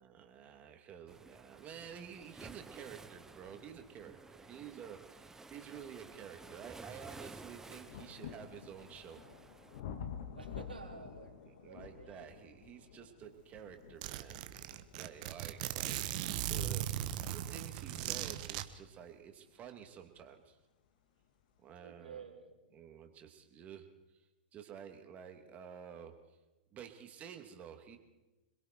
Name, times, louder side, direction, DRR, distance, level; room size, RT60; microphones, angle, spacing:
voice 1, 0.1-9.2 11.6-14.4 14.9-20.6 21.6-22.3 22.7-24.2 24.5-26.4 26.7-28.0, right 8 dB, 30° right, 5 dB, 2.7 m, -51 dB
Waves surf, 1.1-9.8, right 3 dB, 10° right, 1.1 m, -54 dB
sound 1, 5.0-5.1 5.6-20.3 21.2-21.3, left 7 dB, 60° left, 2.2 m, -51 dB
voice 2, 10.3-12.3 21.8-22.9, right 5 dB, 85° right, 0 dB, 3.9 m, -52 dB
Zipper (clothing), 13.2-13.3 13.6-13.7 14.0-18.6, right 12 dB, 50° right, 1.3 m, -38 dB
26.5 x 22.0 x 4.6 m, 1.1 s
hypercardioid pair, 105°, 5 cm